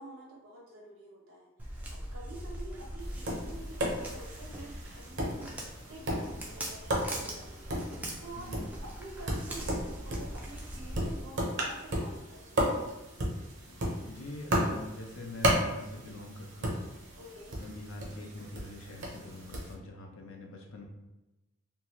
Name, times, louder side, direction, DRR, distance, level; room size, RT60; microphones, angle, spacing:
voice 1, 0.0-1.5 2.1-5.5 5.9-8.5 9.0-12.7 17.2-17.6, right 1 dB, 75° right, -2 dB, 0.9 m, -48 dB
Walk footsteps, 1.6-11.2, equal, 5° right, 0.3 m, -41 dB
Tap, 3.0-19.7, right 1 dB, 55° right, 0.6 m, -35 dB
voice 2, 14.0-16.9 17.6-20.9, left 1 dB, 70° left, 1 dB, 0.5 m, -44 dB
2.7 x 2.4 x 3.0 m, 0.99 s
head